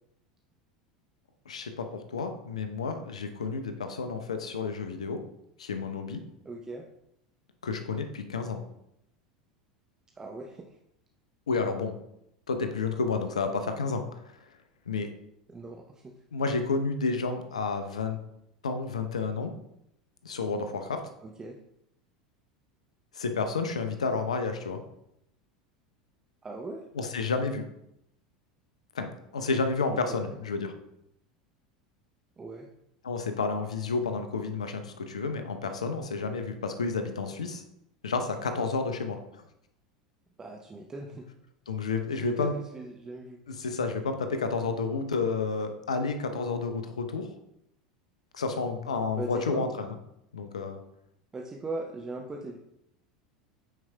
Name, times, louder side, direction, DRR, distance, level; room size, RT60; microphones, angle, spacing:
voice 1, 1.5-5.2 5.6-6.2 7.6-8.6 11.5-11.9 12.5-14.0 14.9-15.1 16.3-18.2 18.6-19.5 20.2-21.0 23.1-24.8 26.9-27.6 28.9-29.1 29.3-30.7 33.0-37.6 38.0-39.4 41.7-42.5 43.5-47.3 48.3-50.0 50.3-50.8, left 4 dB, 80° left, 7 dB, 0.6 m, -30 dB
voice 2, 6.4-6.8 10.2-10.8 15.5-16.1 21.2-21.6 26.4-26.9 29.9-30.2 32.4-32.7 40.4-41.2 42.1-43.4 49.2-49.7 51.3-52.6, right 2 dB, 20° right, 1 dB, 0.6 m, -39 dB
9.1 x 4.6 x 2.2 m, 0.81 s
hypercardioid pair, 80°, 3 cm